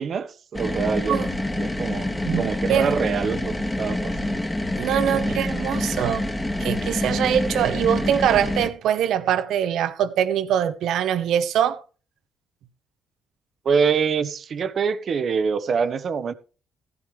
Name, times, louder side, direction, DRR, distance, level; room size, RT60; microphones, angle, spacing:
voice 1, 0.0-2.1 2.4-4.5 5.1-5.4 13.6-16.3, right 6 dB, 55° right, 1.0 m, -25 dB
sound 1, 0.5-8.7, left 1 dB, 15° left, 1.8 m, -27 dB
voice 2, 2.2-2.9 4.8-6.3 6.6-11.8, right 9 dB, 80° right, 1.0 m, -23 dB
15.0 x 11.0 x 3.3 m
cardioid pair, 90°, 0 cm